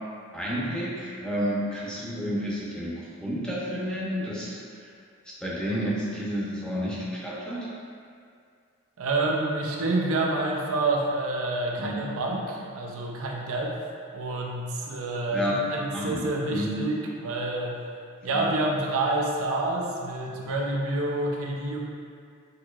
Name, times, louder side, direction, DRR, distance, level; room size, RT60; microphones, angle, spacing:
voice 1, 0.3-4.9 5.4-7.7 11.8-12.0 15.3-15.6 15.9-16.2 16.5-16.7 18.3-18.5, equal, 5° left, -7 dB, 0.8 m, -30 dB
voice 2, 9.0-13.7 14.1-17.8 18.2-21.8, right 2 dB, 65° right, -1 dB, 0.6 m, -28 dB
6.5 x 2.9 x 2.4 m, 2.2 s
head